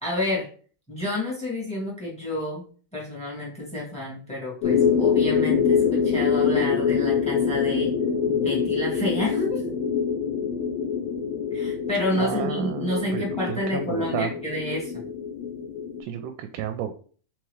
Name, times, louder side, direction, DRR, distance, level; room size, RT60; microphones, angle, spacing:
voice 1, 0.0-0.5 0.9-2.6 2.9-7.9 8.3-9.6 11.5-15.0, left 1 dB, 5° left, -4 dB, 1.3 m, -29 dB
sound 1, 4.6-16.0, left 6 dB, 75° left, 1.5 m, -25 dB
voice 2, 12.2-14.3 16.0-16.9, right 9 dB, 90° right, 6 dB, 2.1 m, -32 dB
4.5 x 3.7 x 3.1 m, 0.42 s
omnidirectional pair, 3.6 m